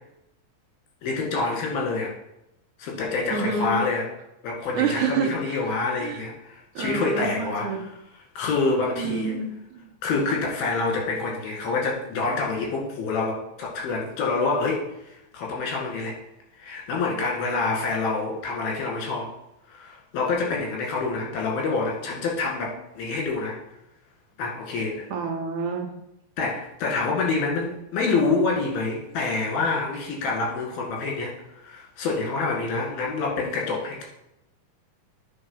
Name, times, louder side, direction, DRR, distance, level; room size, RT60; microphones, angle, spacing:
voice 1, 1.0-2.1 2.8-4.1 4.4-7.8 8.4-9.4 10.0-16.2 16.6-19.3 19.7-23.6 24.4-25.1 26.4-31.4 31.6-34.0, left 3 dB, 75° left, -1 dB, 3.8 m, -27 dB
voice 2, 3.3-3.8 4.7-5.6 5.9-6.2 6.8-7.8 9.0-9.8 25.1-25.9, right 5 dB, 75° right, 3 dB, 1.9 m, -28 dB
8.6 x 4.6 x 5.6 m, 0.84 s
omnidirectional pair, 4.4 m